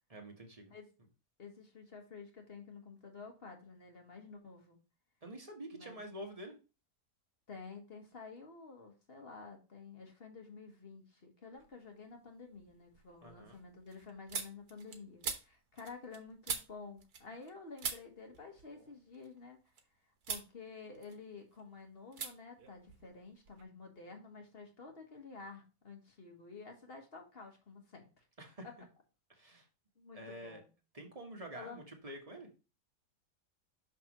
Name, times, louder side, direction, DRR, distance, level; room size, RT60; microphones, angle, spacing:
voice 1, 0.1-0.7 5.2-6.6 13.2-13.6 28.4-28.7 29.3-29.7 30.1-30.6 30.9-32.5, right 1 dB, 25° right, 2 dB, 1.3 m, -48 dB
voice 2, 1.4-4.8 5.7-6.0 7.5-19.6 20.3-28.3 28.6-28.7 30.0-30.7 31.5-31.8, left 4 dB, 40° left, 3 dB, 1.5 m, -51 dB
sound 1, 11.5-12.1 12.5-17.5 17.8-19.8 20.2-20.5 20.9-21.6 22.1-22.3 22.6-23.6, right 6 dB, 80° right, 1.6 m, -44 dB
6.1 x 5.9 x 3.0 m, 0.31 s
omnidirectional pair, 1.6 m